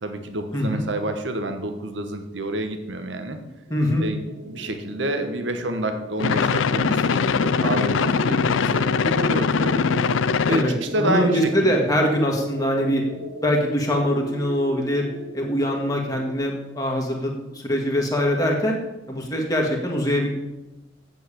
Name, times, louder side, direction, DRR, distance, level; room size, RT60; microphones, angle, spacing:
voice 1, 0.0-3.4 4.0-9.9 10.5-11.7, right 1 dB, 75° right, 7 dB, 1.2 m, -28 dB
voice 2, 0.5-0.8 3.7-4.1 10.5-13.0 13.4-15.1 15.3-18.8 19.1-20.3, equal, 20° left, 0 dB, 1.7 m, -23 dB
sound 1, 3.7-16.4, right 2 dB, 90° right, 2.6 m, -37 dB
sound 2, 6.2-10.7, left 5 dB, 90° left, 0.5 m, -21 dB
8.3 x 7.2 x 8.5 m, 1.0 s
head